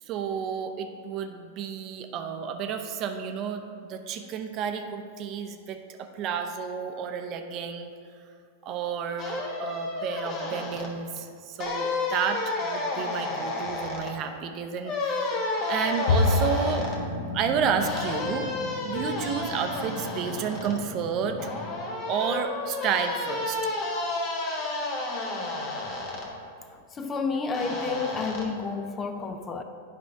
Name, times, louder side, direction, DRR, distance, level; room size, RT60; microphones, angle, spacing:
voice 1, 0.1-7.9 8.6-15.3 15.7-16.9 17.3-18.5 18.8-21.5 22.1-23.6, right 7 dB, 40° right, 6 dB, 0.6 m, -31 dB
sound 1, 9.2-10.9 11.6-14.1 14.8-17.0 17.8-20.7 21.4-26.3 27.5-28.4, left 2 dB, 40° left, 1.4 m, -31 dB
Bowed string instrument, 16.1-19.5, left 3 dB, 65° left, 0.8 m, -29 dB
sound 2, 16.7-21.8, left 1 dB, ahead, 1.2 m, -40 dB
voice 2, 26.7-29.6, left 4 dB, 25° left, 7 dB, 0.5 m, -30 dB
9.3 x 5.2 x 3.4 m, 2.3 s
hypercardioid pair, 100°, 0 cm